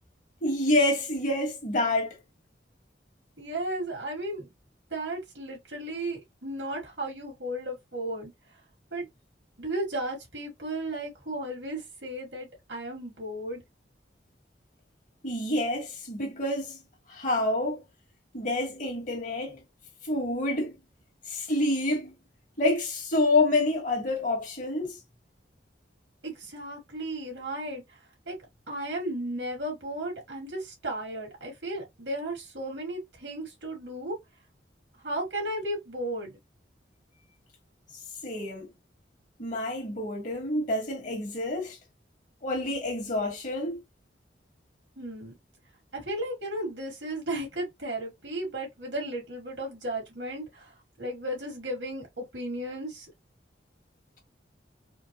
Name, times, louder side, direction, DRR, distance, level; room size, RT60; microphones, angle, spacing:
voice 1, 0.4-2.2 15.2-16.8 17.1-17.8 18.3-19.6 20.0-20.7 21.3-22.1 22.6-25.0 38.2-38.7 39.4-41.8 42.4-43.8, left 2 dB, 45° left, 1.6 m, -28 dB
voice 2, 3.4-4.5 4.9-8.3 8.9-9.1 9.6-13.6 26.2-27.8 28.3-28.4 28.7-34.2 35.0-36.4 45.0-45.3 45.9-50.7 51.0-53.1, right 1 dB, 85° right, 2.1 m, -34 dB
4.4 x 2.2 x 2.9 m
head